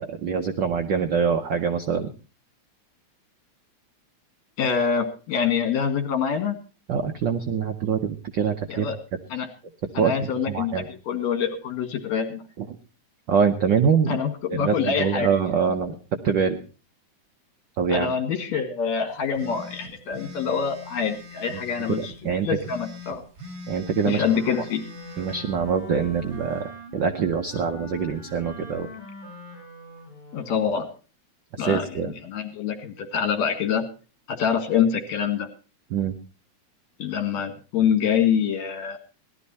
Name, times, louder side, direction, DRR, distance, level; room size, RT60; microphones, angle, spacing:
voice 1, 0.0-2.1 6.9-8.9 10.0-10.1 10.5-10.9 12.6-12.7 13.3-14.2 14.5-15.9 16.2-16.6 17.8-18.1 21.9-22.5 23.7-24.2 25.2-28.9 31.5-32.1 35.9-36.1, right 6 dB, 85° right, 6 dB, 1.0 m, -24 dB
voice 2, 4.6-6.6 8.7-9.0 9.3-9.5 9.9-12.4 14.1-15.3 17.9-22.1 22.4-23.2 24.0-24.8 30.3-30.9 31.6-31.8 32.2-33.8 34.3-35.5 37.0-39.0, left 7 dB, 70° left, 7 dB, 3.1 m, -25 dB
sound 1, 19.4-22.2 22.6-25.4, left 4 dB, 30° right, 2.3 m, -41 dB
Wind instrument woodwind instrument, 24.0-30.7, left 1 dB, 35° left, 8.1 m, -43 dB
18.0 x 12.5 x 4.2 m, 0.35 s
omnidirectional pair, 3.4 m